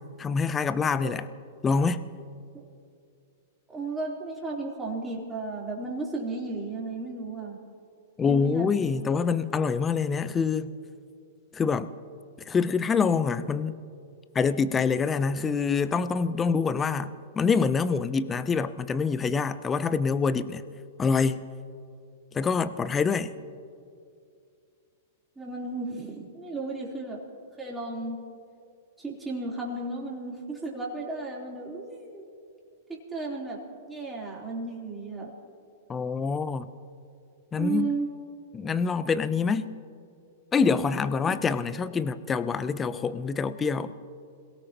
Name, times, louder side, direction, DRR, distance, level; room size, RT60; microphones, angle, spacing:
voice 1, 0.2-1.3 1.6-2.1 8.2-10.7 11.5-11.9 12.5-13.8 14.3-20.6 21.0-21.4 22.3-23.3 35.9-36.7 37.5-37.9 38.5-39.7 40.5-43.9, left 5 dB, 20° left, 14 dB, 0.7 m, -26 dB
voice 2, 3.7-7.6 8.2-9.1 25.4-27.2 27.6-28.2 29.0-32.3 32.9-33.6 33.9-35.3 37.5-38.1 40.7-40.9 41.2-41.4, right 3 dB, 10° right, -4 dB, 3.7 m, -34 dB
27.5 x 17.5 x 3.0 m, 2.4 s
hypercardioid pair, 110°, 0 cm